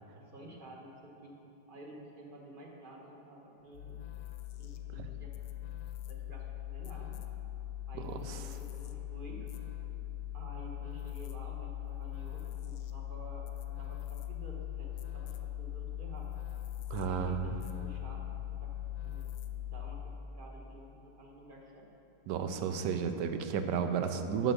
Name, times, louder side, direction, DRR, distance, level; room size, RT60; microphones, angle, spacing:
voice 1, 0.1-1.3 1.7-4.2 4.5-5.3 6.0-7.2 7.9-9.4 10.3-13.5 13.8-16.3 16.9-17.5 17.8-18.2 18.6-18.7 19.0-19.3 19.7-21.9, right 1 dB, 35° right, -1 dB, 1.0 m, -51 dB
sound 1, 3.7-20.3, left 12 dB, 85° left, 1.3 m, -41 dB
voice 2, 8.0-8.4 16.9-17.6 22.3-24.5, right 7 dB, 75° right, 7 dB, 1.2 m, -33 dB
7.6 x 6.4 x 6.7 m, 2.9 s
omnidirectional pair, 2.0 m